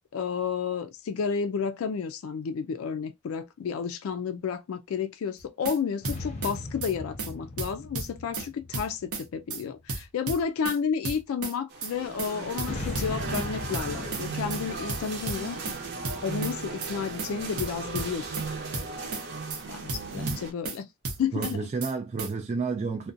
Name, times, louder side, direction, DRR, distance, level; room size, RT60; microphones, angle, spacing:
voice 1, 0.1-15.6 16.2-18.3 19.7-20.9 21.2-21.7, left 6 dB, 75° left, 0.3 m, -31 dB
sound 1, 5.4-5.8 6.0-6.5 6.8-6.9 7.2-7.3 7.6-8.5 8.7-9.2 9.5-9.6 9.9-10.8 11.0-11.5 11.8-11.9 12.2-12.3 12.6-13.5 13.7-14.2 14.5-14.6 14.9-15.8 16.0-16.5 16.8-16.9 17.2-17.3 17.6-18.5 18.7-19.2 19.5-19.6 19.9-20.8 21.0-21.5 21.8-21.9 22.2-22.3, right 3 dB, 90° right, 0.8 m, -33 dB
sound 2, 6.0-9.7 12.6-16.4, left 2 dB, 30° left, 0.6 m, -39 dB
sound 3, 11.7-20.5, right 4 dB, 50° right, 0.7 m, -37 dB
voice 2, 20.1-20.4 21.3-23.1, right 4 dB, 30° right, 0.3 m, -31 dB
2.5 x 2.2 x 2.5 m
head